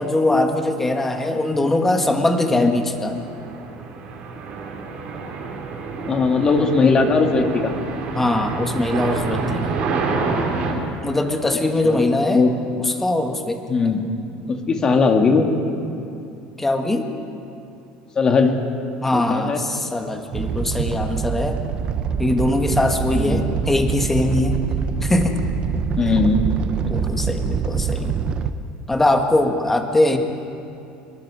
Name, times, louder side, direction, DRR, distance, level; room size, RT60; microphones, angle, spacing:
voice 1, 0.0-3.2 8.1-9.9 11.0-12.5 12.8-13.6 16.6-17.1 19.0-21.6 22.2-24.6 25.0-25.4 26.0-26.1 26.9-28.2 28.9-30.2, left 2 dB, 10° left, 4 dB, 1.7 m, -21 dB
sound 1, 2.9-10.7, right 4 dB, 50° right, 4.3 m, -28 dB
voice 2, 6.1-7.7 11.8-12.5 13.7-14.0 14.5-15.5 18.2-18.6 19.1-19.6 23.1-23.4 26.0-26.4, left 4 dB, 25° left, 4 dB, 2.1 m, -19 dB
Animal, 20.3-28.5, right 6 dB, 35° right, 0.9 m, -24 dB
25.5 x 22.5 x 5.0 m, 2.7 s
cardioid pair, 140°, 3 cm